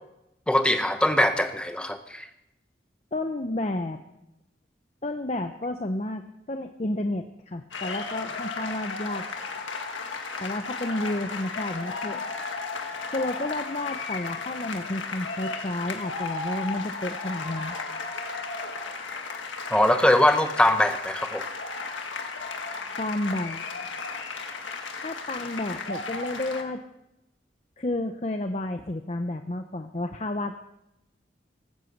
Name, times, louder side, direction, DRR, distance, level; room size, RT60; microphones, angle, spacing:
voice 1, 0.5-2.3 19.7-21.4, left 1 dB, 5° left, 8 dB, 0.9 m, -22 dB
voice 2, 3.1-4.0 5.0-9.3 10.4-12.2 13.1-17.8 23.0-23.6 25.0-26.8 27.8-30.6, left 1 dB, 35° left, 6 dB, 0.7 m, -31 dB
sound 1, 7.7-26.6, left 4 dB, 90° left, 1.7 m, -34 dB
19.0 x 8.1 x 8.0 m, 0.87 s
head